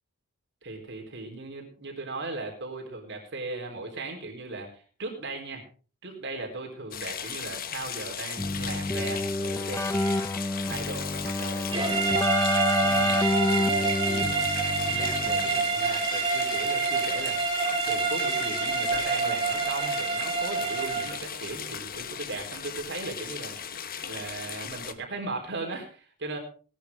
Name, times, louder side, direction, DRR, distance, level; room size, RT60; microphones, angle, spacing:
voice 1, 0.6-5.6 6.0-10.3 10.6-17.5 17.8-23.7 24.1-26.4, right 3 dB, 60° right, 2 dB, 4.1 m, -38 dB
sound 1, 6.9-24.9, left 8 dB, 45° left, 1.2 m, -37 dB
Keyboard (musical), 8.4-15.7, left 1 dB, 15° left, 0.5 m, -28 dB
sound 2, 11.7-21.2, right 4 dB, 25° right, 4.0 m, -27 dB
18.5 x 11.5 x 3.7 m, 0.39 s
head